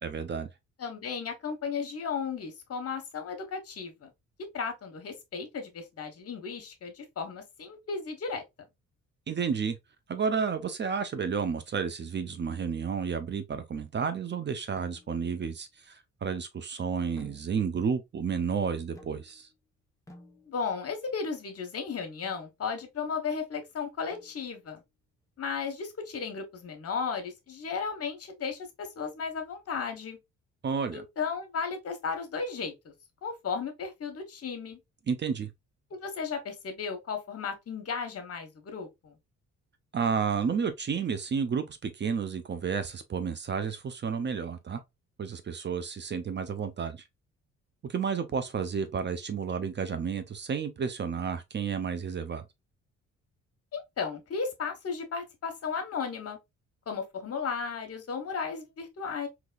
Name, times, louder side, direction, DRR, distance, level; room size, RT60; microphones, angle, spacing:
voice 1, 0.0-0.5 9.3-9.8 10.1-19.5 30.6-31.0 35.1-35.5 39.9-44.8 45.2-47.0 47.8-52.4, right 6 dB, 35° right, 0.6 m, -31 dB
voice 2, 0.8-4.1 4.5-8.4 20.4-24.8 25.4-30.2 30.9-32.9 33.2-34.8 35.9-39.2 53.7-56.4 56.9-59.3, left 5 dB, 50° left, 1.2 m, -35 dB
sound 1, 14.8-15.4 17.2-17.9 18.9-19.5 20.1-20.9 22.2-22.6 24.1-24.7, left 1 dB, 10° left, 1.0 m, -55 dB
3.9 x 2.9 x 2.3 m
cardioid pair, 90°, 30 cm